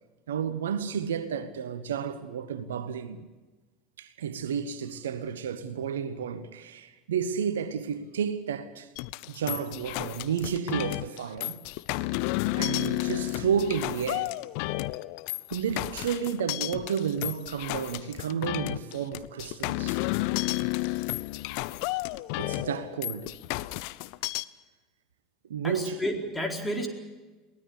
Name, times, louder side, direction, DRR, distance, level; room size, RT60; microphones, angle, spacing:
voice 1, 0.3-3.3 4.0-8.9 9.3-11.6 12.5-14.3 15.5-20.0 22.4-23.3 25.5-26.0, right 7 dB, 75° right, 1.2 m, -31 dB
sound 1, 9.0-24.4, left 21 dB, 60° left, 0.6 m, -32 dB
voice 2, 25.6-26.9, equal, 10° left, 4.3 m, -31 dB
23.0 x 17.5 x 8.4 m
figure-of-eight pair, 75°, 0 cm